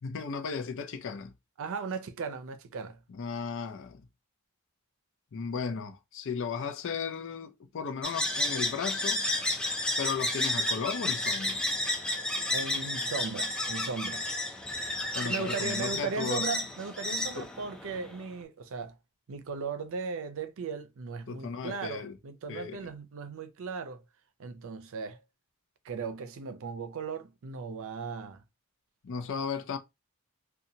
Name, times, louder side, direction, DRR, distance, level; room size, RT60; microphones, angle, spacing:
voice 1, 0.0-1.3 3.1-4.1 5.3-9.2 10.0-11.6 15.1-16.5 17.4-17.5 21.3-22.2 22.5-22.9 29.0-29.8, left 5 dB, 60° left, 0.5 m, -35 dB
voice 2, 1.6-3.0 12.5-14.3 15.2-19.0 19.3-24.0 24.4-25.2 25.8-28.4, right 5 dB, 65° right, 0.5 m, -37 dB
sound 1, 8.0-18.2, left 1 dB, 5° left, 0.5 m, -32 dB
2.7 x 2.2 x 2.7 m
head